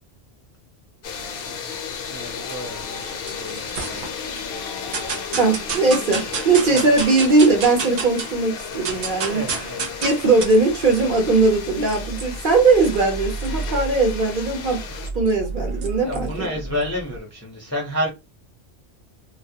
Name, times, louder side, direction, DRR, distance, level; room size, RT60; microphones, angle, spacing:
sound 1, 1.0-15.1, left 6 dB, 65° left, 0.7 m, -34 dB
voice 1, 2.1-4.1 6.7-6.8 9.3-10.1 15.9-18.1, left 1 dB, 20° left, 0.5 m, -31 dB
sound 2, 2.8-4.4 4.9-8.4 8.7-17.2, right 4 dB, 80° right, 1.0 m, -31 dB
voice 2, 5.4-9.4 10.0-14.8 15.1-16.5, right 3 dB, 55° right, 0.8 m, -19 dB
2.3 x 2.1 x 2.7 m
omnidirectional pair, 1.1 m